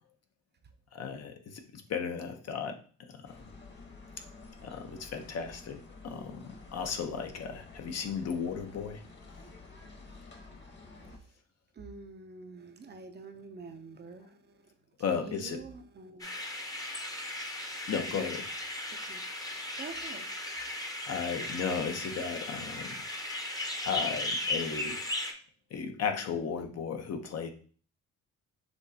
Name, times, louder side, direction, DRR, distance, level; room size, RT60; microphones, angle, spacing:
voice 1, 0.9-2.8 3.1-3.3 4.6-9.0 15.0-15.6 17.9-18.4 21.1-23.0 23.8-25.0 25.7-27.5, left 6 dB, 55° left, 5 dB, 0.9 m, -35 dB
sound 1, 3.2-11.2, left 3 dB, 35° left, 1.3 m, -51 dB
voice 2, 11.7-14.7 15.1-16.4 18.1-18.3 18.9-19.2 19.8-20.3, right 3 dB, 35° right, 6 dB, 0.6 m, -46 dB
sound 2, 16.2-25.3, left 1 dB, 10° left, 0.8 m, -36 dB
6.0 x 3.1 x 2.8 m, 0.43 s
cardioid pair, 90°, 30 cm